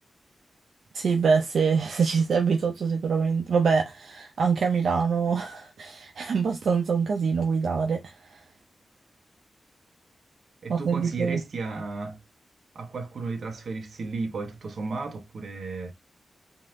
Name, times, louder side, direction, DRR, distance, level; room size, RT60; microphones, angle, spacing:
voice 1, 0.9-8.4 10.7-11.4, right 5 dB, 80° right, 0.7 m, -25 dB
voice 2, 10.6-12.2 12.7-15.9, right 3 dB, 65° right, 1.0 m, -34 dB
4.0 x 2.7 x 3.7 m
wide cardioid pair, 125°, 0 cm